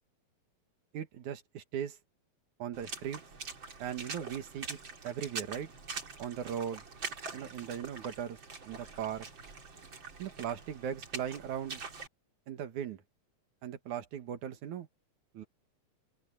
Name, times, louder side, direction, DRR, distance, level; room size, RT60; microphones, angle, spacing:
voice 1, 0.9-2.0 2.6-3.2 3.8-4.8 5.0-5.7 6.2-6.8 7.3-8.4 8.6-9.3 10.2-11.8 12.5-13.0 13.6-14.9 15.3-15.4, right 9 dB, 85° right, 3.1 m, -38 dB
Water / Splash splatter, 2.7-12.1, right 4 dB, 40° right, 3.6 m, -44 dB
open air
omnidirectional pair, 3.3 m